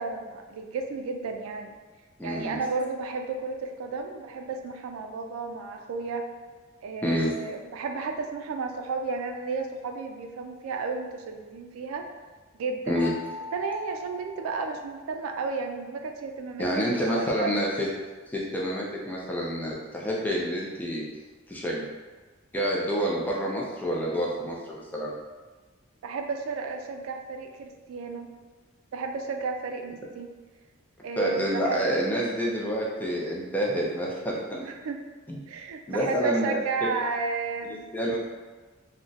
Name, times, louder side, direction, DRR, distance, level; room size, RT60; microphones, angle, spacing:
voice 1, 0.0-1.8 2.2-6.3 6.8-12.1 12.5-13.0 13.5-17.6 26.0-28.3 28.9-30.3 31.0-31.8 34.6-35.0 35.5-37.9, right 4 dB, 80° right, 5 dB, 0.3 m, -33 dB
voice 2, 2.2-2.6 7.0-7.3 12.9-13.1 16.6-17.9 18.3-21.0 21.5-21.8 22.5-25.1 31.2-34.6 35.3-35.4 35.9-36.6 37.9-38.2, equal, 10° left, -4 dB, 0.4 m, -28 dB
Mallet percussion, 12.9-15.5, left 3 dB, 60° right, 1.0 m, -42 dB
2.4 x 2.1 x 3.9 m, 1.3 s
head